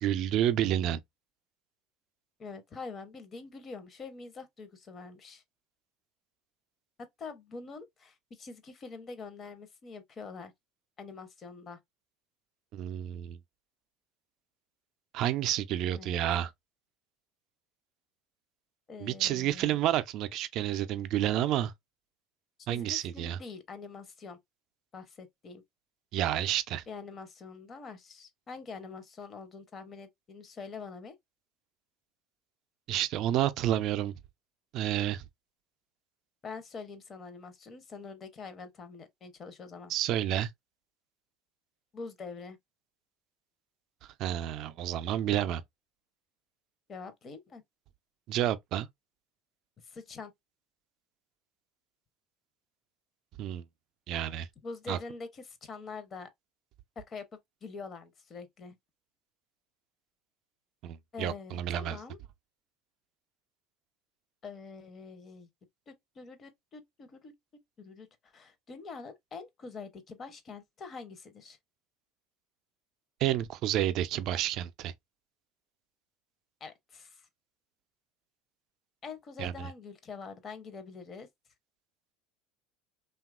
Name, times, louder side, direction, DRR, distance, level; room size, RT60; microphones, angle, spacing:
voice 1, 0.0-1.0 12.7-13.4 15.1-16.5 19.0-21.7 22.7-23.4 26.1-26.8 32.9-34.1 34.7-35.2 39.9-40.5 44.2-45.6 48.3-48.9 53.4-53.6 54.1-54.5 54.9-55.0 60.8-62.0 73.2-74.9 79.4-79.7, right 12 dB, 55° right, 0.3 m, -30 dB
voice 2, 2.4-5.4 7.2-10.5 11.0-11.8 15.9-16.2 18.9-19.8 22.7-24.4 24.9-25.6 26.9-31.1 36.4-39.9 41.9-42.6 46.9-47.6 49.8-50.3 54.6-56.3 57.0-57.3 57.6-58.8 61.1-62.2 64.4-65.5 65.9-67.3 67.8-71.6 76.6-77.3 79.0-81.3, left 4 dB, 35° left, 0.7 m, -45 dB
2.8 x 2.3 x 2.3 m
hypercardioid pair, 85°, 0 cm